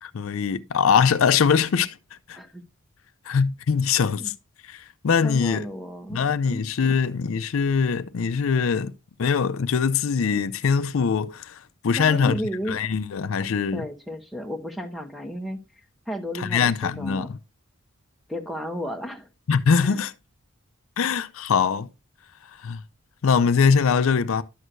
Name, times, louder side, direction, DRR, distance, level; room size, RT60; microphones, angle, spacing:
voice 1, 0.0-1.9 2.3-2.4 3.3-4.3 4.7-5.6 6.1-8.9 9.2-12.4 12.7-13.8 16.4-17.3 19.5-20.1 21.0-21.9 22.6-22.8 23.2-24.4, left 6 dB, 70° left, 0.4 m, -22 dB
voice 2, 5.2-6.6 12.0-12.8 13.4-15.6 16.1-17.3 18.3-19.3 19.8-20.0, equal, ahead, 0.8 m, -33 dB
11.0 x 6.3 x 2.6 m
head